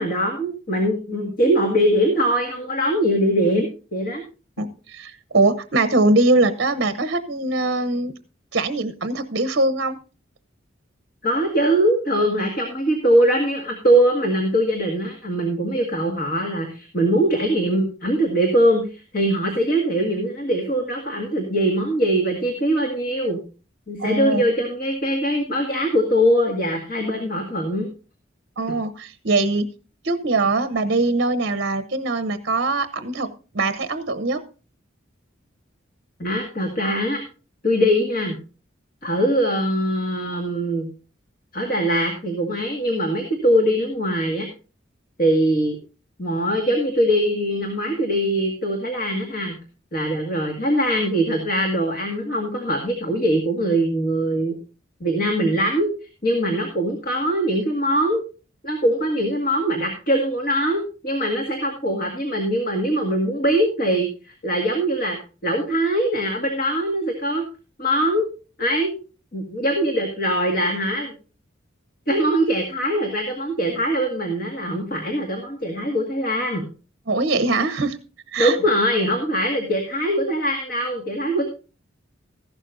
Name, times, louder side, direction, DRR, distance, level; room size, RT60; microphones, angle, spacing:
voice 1, 0.0-4.2 11.2-23.4 23.9-27.9 28.7-28.8 36.2-37.2 37.6-38.3 39.0-40.9 41.5-44.5 45.2-45.8 46.2-49.6 49.9-54.6 55.0-55.9 56.2-58.2 58.6-65.2 65.4-67.4 67.8-68.3 68.6-68.9 69.3-71.1 72.1-76.6 78.4-81.5, equal, 50° left, 2 dB, 1.9 m, -22 dB
voice 2, 4.6-8.1 8.5-10.0 24.0-24.4 28.6-29.7 30.0-34.4 77.1-78.0 78.3-78.6, right 2 dB, 55° right, 10 dB, 0.8 m, -22 dB
14.5 x 11.5 x 2.6 m, 0.34 s
head